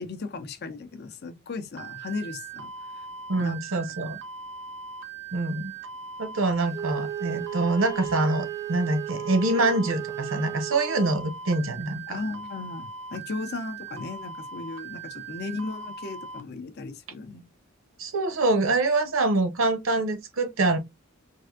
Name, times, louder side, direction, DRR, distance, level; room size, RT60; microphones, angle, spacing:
voice 1, 0.0-3.1 3.4-3.6 12.1-17.5, left 3 dB, 55° left, 0.5 m, -36 dB
sound 1, 1.8-16.4, right 5 dB, 60° right, 0.6 m, -40 dB
voice 2, 3.3-4.2 5.3-5.7 6.2-12.2 18.0-20.8, right 2 dB, 90° right, 0.8 m, -25 dB
Wind instrument woodwind instrument, 6.7-11.2, right 10 dB, 15° right, 0.4 m, -35 dB
3.4 x 2.5 x 2.3 m
head